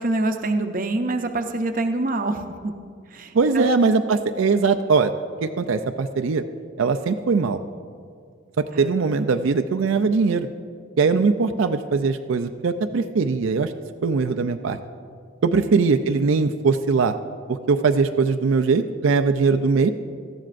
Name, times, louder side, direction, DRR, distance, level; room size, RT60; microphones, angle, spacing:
voice 1, 0.0-2.7 3.1-3.7 8.7-8.9 15.5-15.7, right 2 dB, 40° right, 6 dB, 0.7 m, -25 dB
voice 2, 3.3-5.1 5.4-6.4 6.8-7.6 8.8-10.5 11.0-13.7 14.0-14.8 15.4-17.1 17.5-19.9, right 4 dB, 80° right, 8 dB, 0.4 m, -21 dB
18.0 x 13.0 x 2.5 m, 2.2 s
head